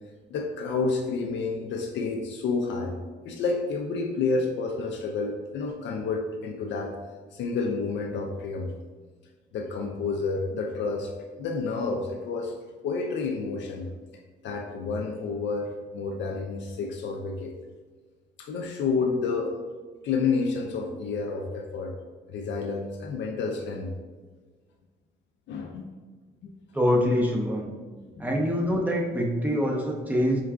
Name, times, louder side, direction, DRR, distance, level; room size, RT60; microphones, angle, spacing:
voice 1, 0.3-3.0 3.2-6.9 7.3-8.7 9.5-11.1 11.4-12.5 12.8-13.9 14.4-17.5 18.4-19.6 20.0-21.9 22.3-23.9 25.5-25.9 26.4-26.5 28.2-28.3, left 4 dB, 70° left, 1 dB, 0.4 m, -29 dB
voice 2, 26.7-27.7 28.2-30.4, equal, 10° right, -1 dB, 0.6 m, -25 dB
4.5 x 2.3 x 2.3 m, 1.4 s
cardioid pair, 90°, 20 cm